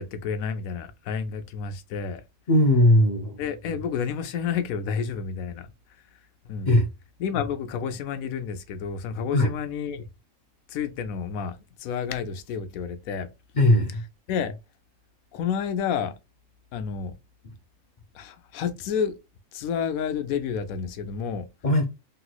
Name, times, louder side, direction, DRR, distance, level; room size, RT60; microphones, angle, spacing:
voice 1, 0.0-2.2 3.4-5.7 6.5-6.7 7.2-10.0 10.7-11.5 11.8-13.3 14.3-14.5 15.3-16.1 16.7-17.1 18.1-19.1 19.5-21.5, left 7 dB, 85° left, 1.0 m, -30 dB
voice 2, 2.5-3.4 6.6-6.9 9.3-9.5 13.5-14.0 21.6-21.8, left 1 dB, 65° left, 0.4 m, -19 dB
3.2 x 3.0 x 2.3 m
omnidirectional pair, 1.4 m